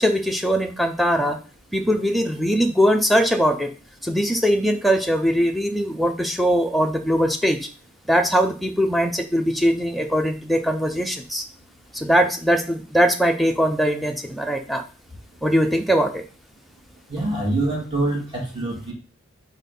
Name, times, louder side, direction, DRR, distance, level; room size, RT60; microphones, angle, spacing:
voice 1, 0.0-1.4 1.7-3.7 4.0-7.7 8.1-11.5 11.9-14.8 15.4-16.2 17.2-17.3, equal, ahead, 4 dB, 0.5 m, -21 dB
voice 2, 17.1-18.9, right 2 dB, 25° right, -2 dB, 2.0 m, -25 dB
4.6 x 4.1 x 5.3 m, 0.38 s
head